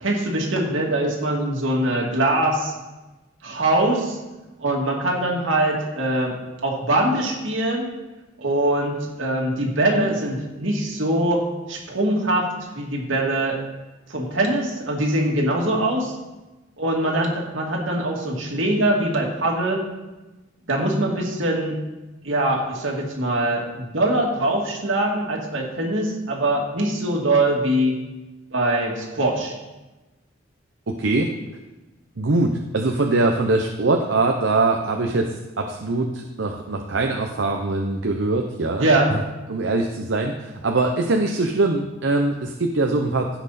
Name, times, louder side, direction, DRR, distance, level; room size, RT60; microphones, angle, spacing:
voice 1, 0.0-2.7 3.4-4.2 4.6-6.3 6.6-7.9 8.4-12.5 12.7-13.6 14.1-16.2 16.8-19.8 20.7-21.8 22.2-28.0 28.5-29.5 38.8-39.1, right 1 dB, 90° right, -1 dB, 2.4 m, -22 dB
voice 2, 32.2-39.2 39.5-43.3, right 2 dB, 75° right, 2 dB, 0.8 m, -22 dB
16.0 x 6.0 x 4.2 m, 1.1 s
head